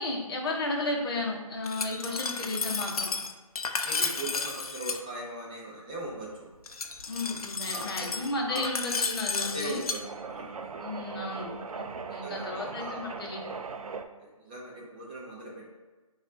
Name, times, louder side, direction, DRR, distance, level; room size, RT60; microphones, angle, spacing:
voice 1, 0.0-3.1 7.1-9.8 10.8-13.4, left 2 dB, 40° left, -1 dB, 0.8 m, -33 dB
Glass, 1.6-5.0 6.7-10.0, left 4 dB, 80° left, 0.5 m, -33 dB
voice 2, 3.8-6.5 7.7-8.1 8.5-8.7 9.4-10.7 11.3-11.8 12.1-13.0 14.2-15.7, right 1 dB, 15° right, -4 dB, 0.5 m, -40 dB
sound 1, 5.9-14.1, right 5 dB, 75° right, 0.4 m, -41 dB
5.0 x 2.4 x 2.6 m, 1.2 s
figure-of-eight pair, 155°, 19 cm